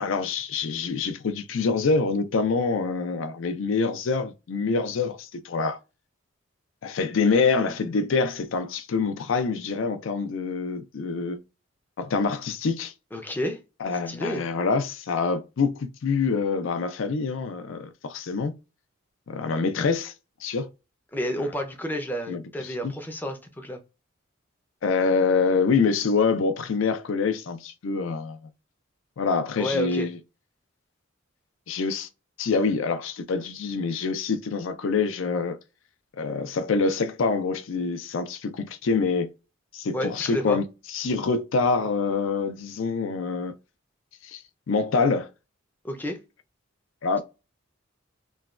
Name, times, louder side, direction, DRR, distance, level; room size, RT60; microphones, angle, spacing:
voice 1, 0.0-5.8 6.8-11.4 12.0-12.9 13.8-18.5 19.3-20.1 20.4-20.7 22.3-22.9 24.8-28.4 29.2-30.2 31.7-32.1 32.4-35.6 36.2-39.3 39.7-40.7 40.9-43.5 44.2-44.4 44.7-45.3 47.0-47.2, left 4 dB, 70° left, 0.4 m, -26 dB
voice 2, 13.1-13.6 14.1-14.4 21.1-23.8 29.6-30.1 39.9-40.6 45.8-46.2, equal, 10° left, 0.5 m, -30 dB
3.0 x 2.2 x 2.4 m
head